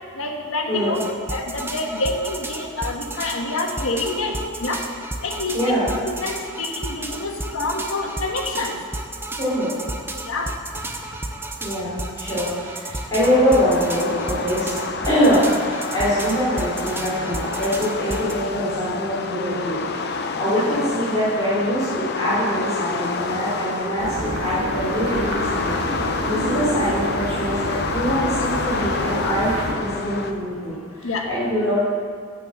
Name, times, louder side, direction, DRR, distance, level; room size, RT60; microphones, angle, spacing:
voice 1, 0.2-1.0 1.3-4.8 5.2-8.8 10.3-10.5 20.5-20.6 31.0-31.2, left 2 dB, 75° left, 2 dB, 1.4 m, -27 dB
voice 2, 0.7-1.0 5.5-5.9 9.4-9.7 11.6-14.7 15.0-31.7, equal, 15° left, -12 dB, 3.1 m, -23 dB
sound 1, 0.9-18.3, right 2 dB, 10° right, 0.6 m, -32 dB
sound 2, 13.2-30.3, left 4 dB, 50° left, 0.6 m, -29 dB
sound 3, 24.0-29.7, right 1 dB, 85° right, 1.9 m, -28 dB
9.2 x 7.1 x 7.3 m, 2.1 s
head